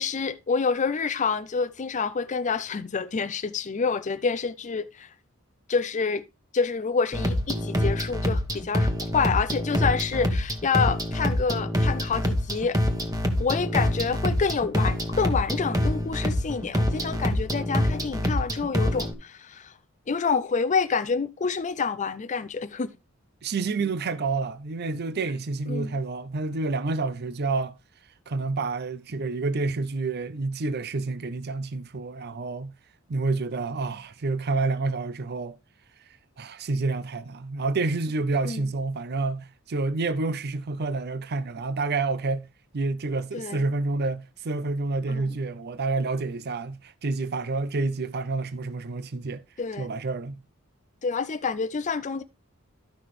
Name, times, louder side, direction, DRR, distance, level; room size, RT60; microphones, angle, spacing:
voice 1, 0.0-5.1 5.7-6.2 6.5-12.8 13.4-19.7 20.1-22.9 25.7-25.9 38.4-38.6 43.3-43.6 45.1-45.3 49.6-49.9 51.0-52.2, left 5 dB, 35° left, 0.5 m, -27 dB
sound 1, 7.1-19.1, equal, 15° right, 1.3 m, -26 dB
voice 2, 23.4-27.8 28.3-32.7 33.1-35.6 36.4-42.5 42.7-49.4 49.8-50.4, right 3 dB, 50° right, 0.6 m, -28 dB
12.5 x 5.7 x 3.1 m
head